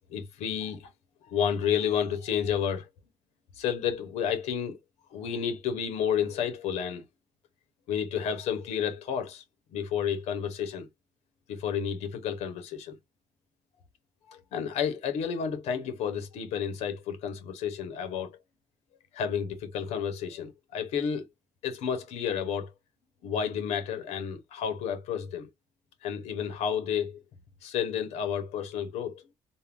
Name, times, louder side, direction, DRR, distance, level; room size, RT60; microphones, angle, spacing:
voice 1, 0.1-0.9 1.3-2.9 3.6-4.8 5.1-7.0 7.9-9.4 9.7-10.9 11.5-13.0 14.3-18.4 19.1-21.3 21.6-22.7 23.2-25.5 26.0-27.2 27.6-29.2, left 8 dB, 75° left, 0.7 m, -31 dB
3.5 x 2.1 x 2.2 m
cardioid pair, 175°, 11 cm